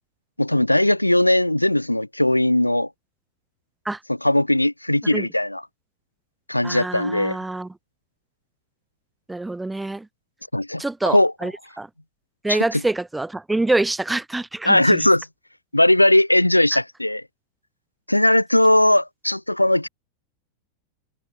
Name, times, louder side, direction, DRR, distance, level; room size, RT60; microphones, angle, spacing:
voice 1, 0.4-2.9 4.1-5.6 6.5-7.4 10.5-11.3 12.5-12.6 14.7-15.3 15.7-17.2 18.1-19.9, left 1 dB, 85° left, 1.8 m, -18 dB
voice 2, 6.6-7.7 9.3-10.1 10.8-11.5 11.8-11.9 12.4-15.1, right 2 dB, 5° right, 1.7 m, -26 dB
open air
figure-of-eight pair, 90°, 0 cm